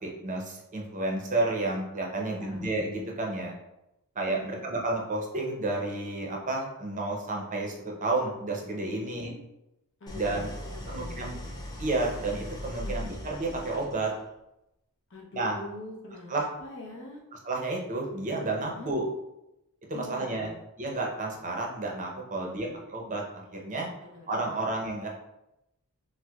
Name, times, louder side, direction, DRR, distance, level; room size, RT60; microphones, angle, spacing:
voice 1, 0.0-3.5 4.2-9.3 10.1-10.5 10.9-11.4 11.8-14.1 15.3-15.6 16.3-16.5 17.4-19.0 19.9-20.5 20.8-23.2 23.5-23.9 24.3-25.1, right 2 dB, 35° right, -1 dB, 0.6 m, -31 dB
voice 2, 2.3-2.7 4.3-4.7 9.1-9.4 10.0-11.5 12.8-13.2 15.1-17.2 18.7-18.9 19.9-20.6 22.4-22.8 24.0-24.6, left 2 dB, 55° left, -3 dB, 0.8 m, -44 dB
Idling, 10.1-14.3, left 1 dB, 20° left, 0.4 m, -39 dB
4.5 x 2.1 x 2.3 m, 0.89 s
head